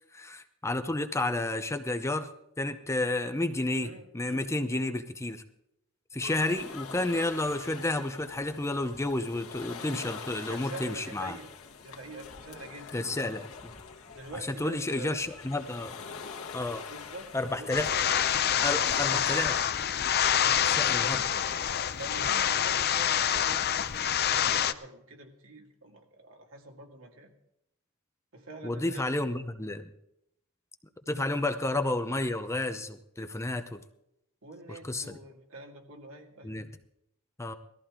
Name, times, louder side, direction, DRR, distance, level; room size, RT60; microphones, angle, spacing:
voice 1, 0.1-2.3 2.6-5.4 6.1-11.4 12.9-13.7 14.5-16.0 16.5-16.8 17.3-17.9 18.6-19.6 20.7-21.2 28.6-29.9 31.1-33.8 34.7-35.2 36.4-36.6 37.4-37.5, left 2 dB, 15° left, 8 dB, 0.7 m, -31 dB
voice 2, 3.8-4.5 10.5-11.5 11.8-13.0 14.1-15.3 16.9-18.0 20.3-21.6 22.0-27.3 28.3-29.1 34.4-36.6, right 2 dB, 70° right, 2 dB, 2.3 m, -46 dB
sound 1, 6.2-19.5, left 5 dB, 85° left, 1.7 m, -45 dB
sound 2, 17.7-24.7, left 9 dB, 50° left, 0.6 m, -26 dB
18.5 x 14.0 x 3.7 m, 0.80 s
head